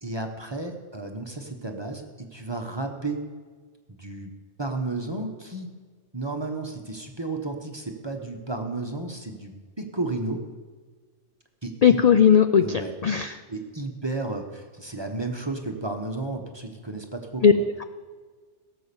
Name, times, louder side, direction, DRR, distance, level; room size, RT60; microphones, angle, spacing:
voice 1, 0.0-3.2 3.9-4.3 4.6-5.7 6.1-10.4 11.6-12.0 12.6-12.9 13.5-17.6, right 2 dB, 25° right, 3 dB, 1.0 m, -33 dB
voice 2, 11.8-13.4 17.4-17.5, left 7 dB, 60° left, 10 dB, 0.4 m, -17 dB
17.0 x 6.8 x 6.9 m, 1.5 s
omnidirectional pair, 1.3 m